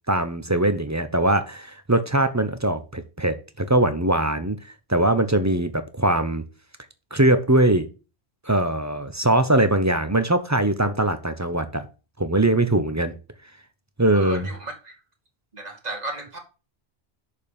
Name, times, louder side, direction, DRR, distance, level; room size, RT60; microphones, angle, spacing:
voice 1, 0.1-4.6 4.9-6.4 7.1-7.9 8.5-11.8 12.2-13.1 14.0-14.5, right 1 dB, 15° right, 0.8 m, -21 dB
voice 2, 14.1-15.0 15.5-16.4, right 2 dB, 40° right, 2.1 m, -34 dB
6.6 x 5.6 x 6.7 m
omnidirectional pair, 1.1 m